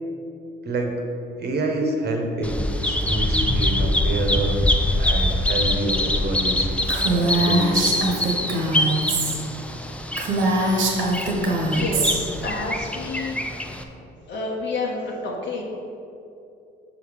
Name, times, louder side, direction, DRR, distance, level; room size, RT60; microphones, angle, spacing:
voice 1, 0.6-1.0 1.4-4.6 5.0-8.5, right 2 dB, 55° right, 2 dB, 1.2 m, -28 dB
Bird vocalization bird call bird song, 2.4-13.8, left 1 dB, 5° left, 0.5 m, -24 dB
Female speech woman speaking, 6.9-9.4 9.7-9.8 10.1-12.2, right 2 dB, 80° right, 1.3 m, -22 dB
voice 2, 11.6-13.4 14.3-15.6, left 3 dB, 65° left, -2 dB, 1.3 m, -29 dB
5.8 x 5.3 x 5.1 m, 2.6 s
cardioid pair, 90°, 20 cm